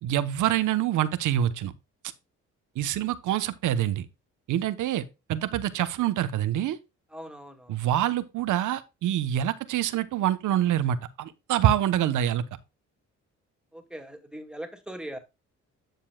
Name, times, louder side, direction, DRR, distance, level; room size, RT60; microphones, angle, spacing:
voice 1, 0.0-1.7 2.8-4.1 4.5-5.0 5.3-6.8 7.7-12.4, right 11 dB, 80° right, 1.0 m, -26 dB
voice 2, 7.1-7.8 13.7-15.2, right 1 dB, 5° right, 2.2 m, -40 dB
10.5 x 6.9 x 2.3 m
cardioid pair, 90°, 30 cm